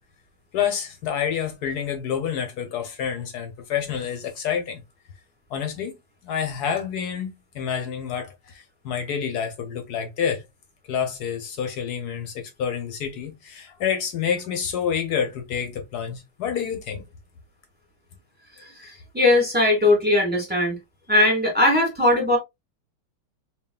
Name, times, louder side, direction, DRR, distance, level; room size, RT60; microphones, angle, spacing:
voice 1, 0.5-4.8 5.5-6.0 6.2-7.3 7.5-10.4 10.9-17.0, left 8 dB, 55° left, 1.2 m, -28 dB
voice 2, 18.8-20.8 21.1-22.4, left 2 dB, 5° right, 1.6 m, -19 dB
4.5 x 3.0 x 2.3 m
omnidirectional pair, 2.4 m